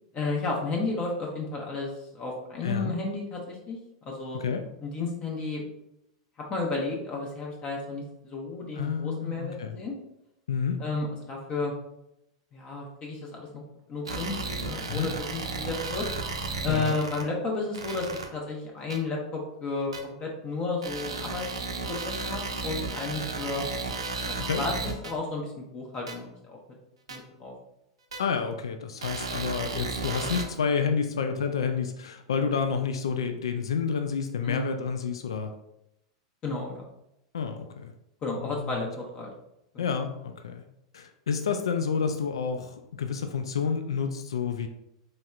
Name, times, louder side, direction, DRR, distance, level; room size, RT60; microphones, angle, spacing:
voice 1, 0.1-4.4 4.8-5.7 6.4-9.9 10.8-11.7 12.5-13.6 13.9-14.3 14.6-16.1 16.6-21.4 21.9-23.6 24.2-26.6 27.1-27.5 34.4-34.7 36.4-36.8 38.2-39.3 39.7-39.9, left 3 dB, 35° left, -1 dB, 0.8 m, -32 dB
voice 2, 2.6-3.0 4.4-4.6 8.8-9.8 10.5-10.8 14.9-15.1 16.7-17.0 24.4-24.6 28.2-35.5 37.3-37.9 38.5-38.9 39.8-40.6 40.9-44.7, left 6 dB, 80° left, 7 dB, 0.3 m, -29 dB
sound 1, 14.1-17.2 17.7-18.2 18.9-19.0 19.9-20.0 20.8-25.1 26.1-26.2 27.1-27.2 28.1-28.2 29.0-30.4, right 3 dB, 85° right, 0.6 m, -34 dB
4.0 x 3.3 x 2.4 m, 0.84 s
hypercardioid pair, 100°, 3 cm